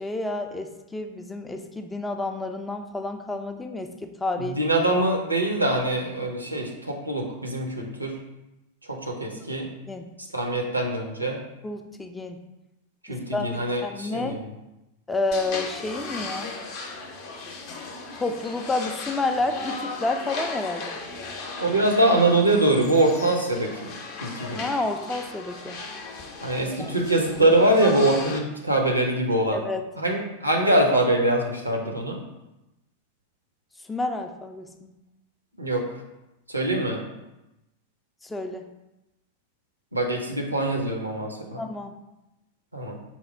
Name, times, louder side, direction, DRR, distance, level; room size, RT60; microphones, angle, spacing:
voice 1, 0.0-4.5 9.4-9.5 9.9-10.1 11.6-12.4 13.1-14.4 15.1-16.5 18.1-21.0 24.5-25.8 26.7-26.9 29.5-29.8 33.9-34.9 38.2-38.7 41.6-42.0, left 2 dB, 10° left, 6 dB, 0.3 m, -30 dB
voice 2, 4.4-8.1 8.9-9.7 10.3-11.4 13.1-14.5 21.6-23.9 24.2-24.6 26.4-29.6 30.0-32.2 35.6-35.8 36.5-37.0 39.9-41.6 42.7-43.0, right 1 dB, 85° right, 1 dB, 0.6 m, -23 dB
sound 1, 15.3-28.4, left 3 dB, 45° left, 0.6 m, -36 dB
4.2 x 2.0 x 4.4 m, 0.95 s
figure-of-eight pair, 90°, 0 cm